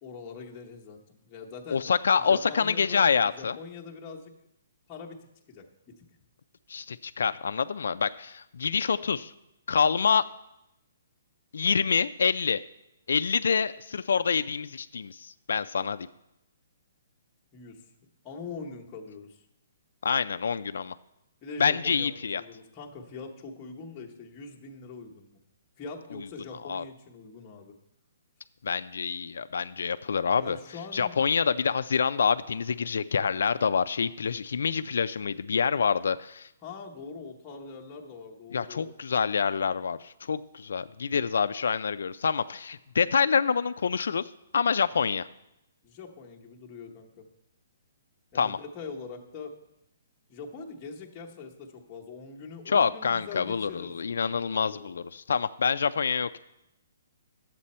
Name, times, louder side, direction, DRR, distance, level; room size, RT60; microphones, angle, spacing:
voice 1, 0.0-1.8 2.2-4.3 4.9-5.2 5.5-5.7 17.5-17.8 18.2-19.4 21.4-25.4 25.8-27.7 30.3-31.1 36.6-38.9 45.8-47.2 48.3-49.5 50.3-54.2 54.5-55.0, left 4 dB, 15° left, -1 dB, 0.9 m, -43 dB
voice 2, 1.7-3.6 6.7-9.3 9.7-10.3 11.5-12.6 13.1-16.1 20.0-20.9 21.6-22.4 26.6-26.8 28.6-30.6 30.9-36.5 38.5-45.3 48.3-48.6 52.7-56.4, left 6 dB, 75° left, 11 dB, 0.3 m, -26 dB
11.0 x 7.5 x 4.2 m, 0.87 s
hypercardioid pair, 170°, 0 cm